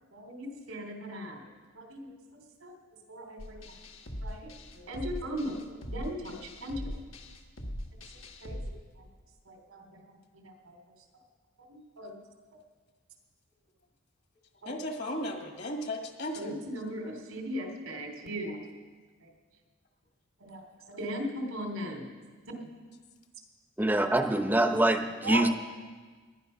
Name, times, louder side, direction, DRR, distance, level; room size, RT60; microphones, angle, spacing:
voice 1, 0.1-1.4 1.7-2.1 2.6-2.7 3.1-3.6 4.2-6.8 8.4-8.6 9.5-9.8 10.4-10.7 11.7-12.2 14.6-14.7 16.4-18.6 20.4-20.6 20.9-22.1 23.8-23.9 25.2-25.5, equal, 90° right, 2 dB, 3.2 m, -37 dB
sound 1, 3.4-8.7, equal, 75° left, 1.6 m, -41 dB
voice 2, 14.7-16.6 22.6-22.7, left 1 dB, 50° left, 3 dB, 1.6 m, -36 dB
voice 3, 23.8-25.5, right 1 dB, 10° right, 7 dB, 0.8 m, -25 dB
19.5 x 11.5 x 5.7 m, 1.5 s
head